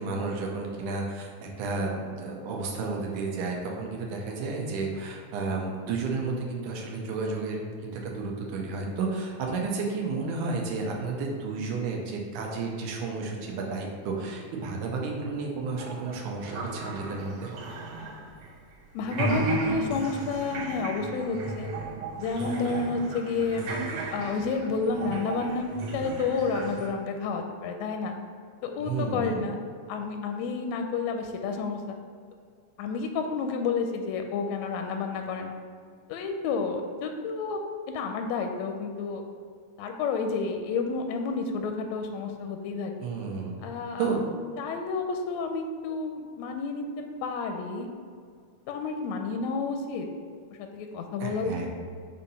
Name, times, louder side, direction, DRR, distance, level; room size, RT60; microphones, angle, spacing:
voice 1, 0.0-17.5 28.8-29.5 43.0-43.7 44.0-44.3 51.2-51.7, right 4 dB, 85° right, 0 dB, 2.3 m, -32 dB
sound 1, 15.8-18.7 19.0-26.9, right 3 dB, 70° right, 1.4 m, -35 dB
voice 2, 18.9-21.7 22.2-23.7 24.1-25.7 25.9-28.1 28.6-29.6 29.9-31.9 32.8-35.5 36.1-37.6 37.9-39.2 39.8-43.1 43.6-44.1 44.6-47.9 48.7-50.1 50.6-51.7, left 4 dB, 80° left, 5 dB, 1.6 m, -30 dB
6.3 x 2.8 x 5.4 m, 2.1 s
omnidirectional pair, 3.5 m